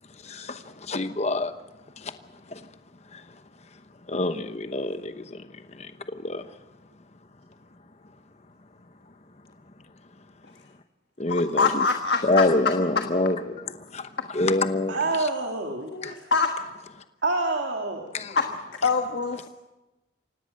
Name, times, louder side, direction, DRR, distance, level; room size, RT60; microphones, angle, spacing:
voice 1, 0.2-1.5 2.0-2.1 2.5-2.6 3.1-3.2 4.1-5.4 5.7-5.9 6.2-6.4 11.2-11.9 12.2-15.0 16.0-16.1 18.1-18.4, left 2 dB, 35° left, 1.0 m, -26 dB
voice 2, 11.3-12.4 13.1-13.2 15.9-16.5 18.3-18.5 18.8-19.5, left 4 dB, 60° left, 1.5 m, -24 dB
voice 3, 14.9-16.3 17.2-18.1, right 3 dB, 75° right, 2.5 m, -27 dB
25.5 x 18.0 x 6.6 m
head